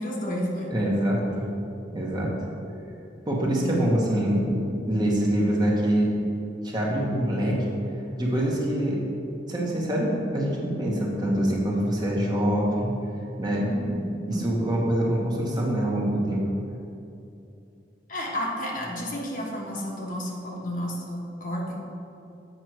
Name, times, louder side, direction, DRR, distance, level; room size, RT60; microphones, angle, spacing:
voice 1, 0.0-0.7 3.6-4.0 13.6-14.5 18.1-21.8, equal, 50° left, -3 dB, 1.3 m, -31 dB
voice 2, 0.7-1.4 1.9-2.3 3.3-6.1 6.6-7.6 8.2-9.0 9.5-12.9 13.4-13.7 14.1-16.4, right 1 dB, 25° right, -3 dB, 1.1 m, -25 dB
7.8 x 5.3 x 4.6 m, 2.7 s
head